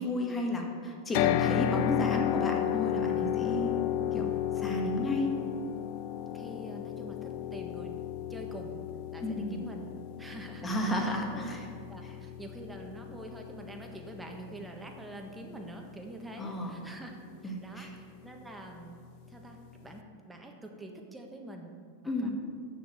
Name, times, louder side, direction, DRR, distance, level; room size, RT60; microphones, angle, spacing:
voice 1, 0.0-3.7 4.1-5.3 9.2-9.6 10.6-11.7 12.0-12.1 16.4-16.8 17.4-17.9 22.0-22.3, left 1 dB, 15° left, 1 dB, 1.6 m, -32 dB
sound 1, 1.1-15.3, left 12 dB, 55° left, 0.4 m, -33 dB
voice 2, 6.3-8.0 8.3-8.8 9.1-9.9 10.2-11.5 11.9-19.0 19.3-21.7 22.0-22.3, right 1 dB, 10° right, 2 dB, 1.3 m, -46 dB
6.9 x 6.0 x 7.6 m, 2.1 s
hypercardioid pair, 115°, 0 cm